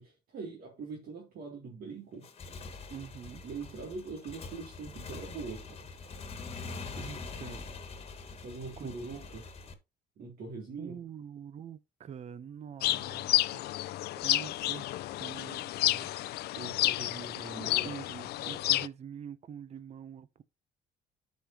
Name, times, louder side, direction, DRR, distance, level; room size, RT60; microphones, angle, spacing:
voice 1, 0.0-2.3 3.4-5.9 8.3-9.5 10.2-11.0 16.5-18.6, right 4 dB, 65° right, 2.8 m, -43 dB
Motorcycle / Engine, 2.1-9.7, left 4 dB, 35° left, 1.6 m, -44 dB
voice 2, 2.9-3.4 6.9-7.7 8.8-8.9 10.8-13.6 14.2-14.9 15.2-16.1 17.8-18.1 18.4-20.4, right 8 dB, 40° right, 0.7 m, -45 dB
sound 1, 12.8-18.9, left 16 dB, 70° left, 0.5 m, -31 dB
12.5 x 5.2 x 2.9 m
cardioid pair, 110°, 17 cm